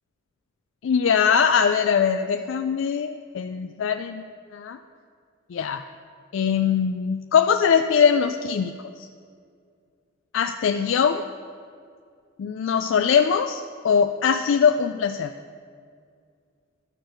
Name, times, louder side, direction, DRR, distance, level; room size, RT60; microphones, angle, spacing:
voice 1, 0.8-4.2 4.5-4.8 5.5-5.8 6.3-9.1 10.3-11.2 12.4-15.3, left 7 dB, 70° left, 8 dB, 0.3 m, -22 dB
11.5 x 6.1 x 6.4 m, 2.2 s
head